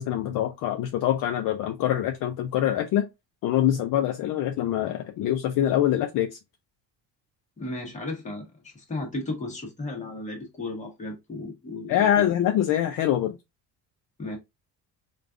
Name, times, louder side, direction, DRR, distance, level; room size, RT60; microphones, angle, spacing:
voice 1, 0.0-3.1 3.4-6.3 11.9-13.4, left 11 dB, 55° left, 0.5 m, -24 dB
voice 2, 7.6-12.3 14.2-14.4, left 2 dB, 15° left, 1.0 m, -35 dB
4.8 x 2.4 x 2.4 m
cardioid pair, 180°, 41 cm